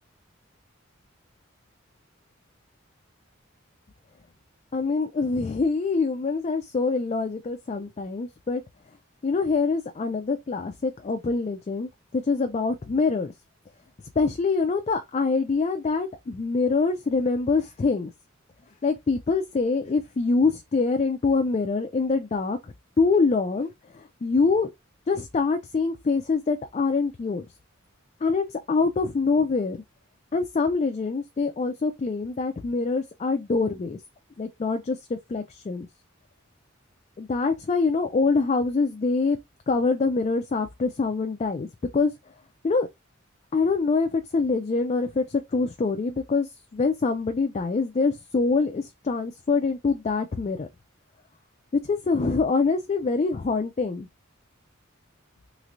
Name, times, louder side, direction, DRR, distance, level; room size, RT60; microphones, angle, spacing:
voice 1, 4.7-8.6 9.2-13.3 14.2-18.1 18.8-24.7 25.1-27.5 28.2-29.8 30.3-34.0 34.4-35.9 37.2-39.4 39.7-41.7 41.9-42.1 42.6-42.9 43.5-50.7 51.7-54.1, left 4 dB, 30° left, 0.3 m, -25 dB
3.3 x 3.1 x 2.5 m
head